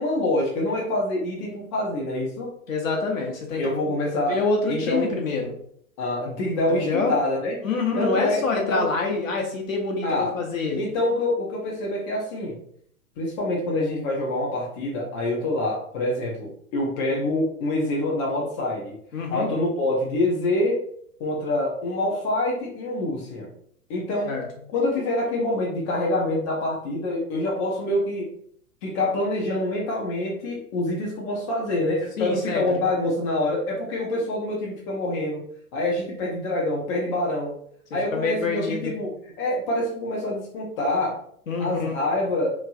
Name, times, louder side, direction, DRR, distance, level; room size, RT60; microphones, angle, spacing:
voice 1, 0.0-2.5 3.6-4.4 4.7-5.2 6.0-7.7 8.0-8.9 10.0-10.3 10.8-12.6 13.2-19.0 19.3-20.8 21.2-23.5 23.9-24.3 24.7-28.3 28.8-35.4 35.7-37.5 37.9-41.2 41.6-42.5, left 1 dB, 25° left, -2 dB, 0.5 m, -26 dB
voice 2, 2.7-4.0 4.3-5.5 6.7-7.1 7.6-10.9 19.1-19.5 24.3-24.4 32.2-32.6 38.1-38.9 41.5-42.0, left 4 dB, 65° left, 1 dB, 0.9 m, -26 dB
3.1 x 2.5 x 2.4 m, 0.65 s
figure-of-eight pair, 105°, 44 cm